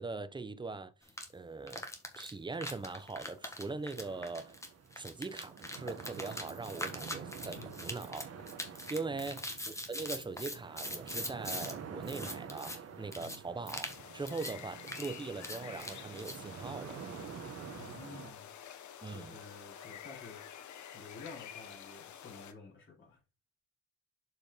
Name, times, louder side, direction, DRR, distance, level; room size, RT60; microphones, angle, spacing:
voice 1, 0.0-1.8 2.2-4.6 5.0-8.3 8.7-17.0 19.0-19.4, right 3 dB, 15° right, 0.7 m, -41 dB
sound 1, 1.1-1.3 1.7-11.7 12.0-12.8 13.1-13.4 13.7-14.0 14.3-14.5 14.8-16.4, left 1 dB, 10° left, 1.6 m, -42 dB
sound 2, 4.0-18.3, right 7 dB, 55° right, 1.5 m, -48 dB
voice 2, 9.1-9.4 13.2-13.4 17.8-18.5 19.1-20.5 20.9-23.2, left 4 dB, 40° left, 4.2 m, -51 dB
sound 3, 13.8-22.5, left 9 dB, 70° left, 1.0 m, -49 dB
7.2 x 4.8 x 4.0 m
cardioid pair, 90°, 30 cm